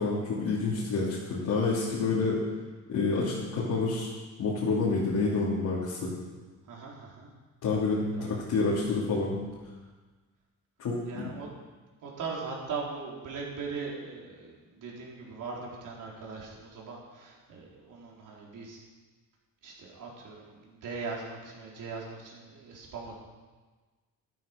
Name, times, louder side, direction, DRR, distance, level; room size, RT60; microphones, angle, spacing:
voice 1, 0.0-2.4 2.9-4.1 4.4-6.1 7.6-9.4 10.8-11.3, left 3 dB, 65° left, -7 dB, 3.1 m, -28 dB
voice 2, 6.7-7.3 8.1-8.3 11.1-11.5 12.0-18.8 19.6-23.2, right 4 dB, 70° right, -3 dB, 4.0 m, -40 dB
12.5 x 11.5 x 5.2 m, 1.3 s
cardioid pair, 110°, 33 cm